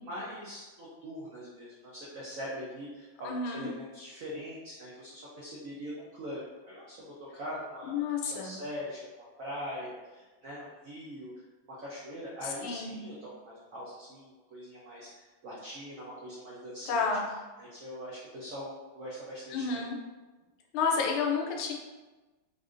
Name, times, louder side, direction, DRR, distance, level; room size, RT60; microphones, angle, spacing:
voice 1, 0.0-9.0 9.4-11.3 11.8-17.0 17.6-19.8, equal, 75° right, -7 dB, 0.7 m, -42 dB
voice 2, 3.2-3.7 7.8-8.6 12.4-13.1 16.9-17.3 19.5-20.0 20.7-21.7, left 5 dB, 85° left, 0 dB, 1.4 m, -31 dB
3.7 x 2.6 x 2.4 m, 1.2 s
omnidirectional pair, 2.2 m